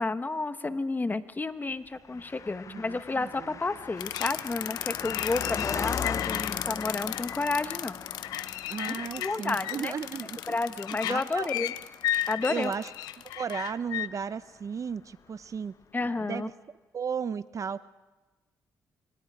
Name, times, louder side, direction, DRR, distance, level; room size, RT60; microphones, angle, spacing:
voice 1, 0.0-8.0 9.1-9.9 10.5-11.7 12.3-12.7 15.9-16.5, left 3 dB, 25° left, 11 dB, 1.2 m, -31 dB
Car passing by, 2.1-14.0 14.2-14.3, left 7 dB, 50° left, 0.6 m, -39 dB
voice 2, 2.7-3.6 8.7-10.6 11.0-11.5 12.5-12.9 13.4-15.7 16.0-16.5 16.9-17.9, right 6 dB, 50° right, 15 dB, 0.7 m, -35 dB
sound 1, 4.0-14.1, left 13 dB, 90° left, 0.7 m, -34 dB
26.0 x 25.5 x 5.0 m, 1.2 s
supercardioid pair, 65°, 7 cm